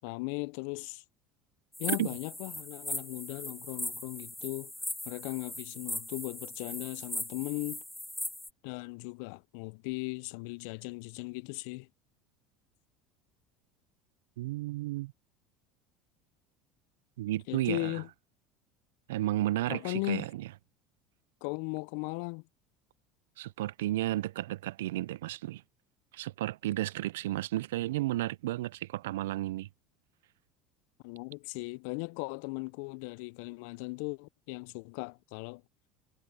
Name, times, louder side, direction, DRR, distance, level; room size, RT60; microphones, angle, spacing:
voice 1, 0.0-1.0 1.8-4.7 5.1-7.8 8.6-11.9 17.5-18.1 19.7-20.3 21.4-22.4 31.0-35.6, left 28 dB, 70° left, 0.5 m, -37 dB
sound 1, 1.7-8.5, left 1 dB, 5° left, 0.9 m, -39 dB
voice 2, 14.4-15.1 17.2-18.0 19.1-20.5 23.4-25.6 26.1-29.7, right 15 dB, 80° right, 0.4 m, -33 dB
hypercardioid pair, 85°, 0 cm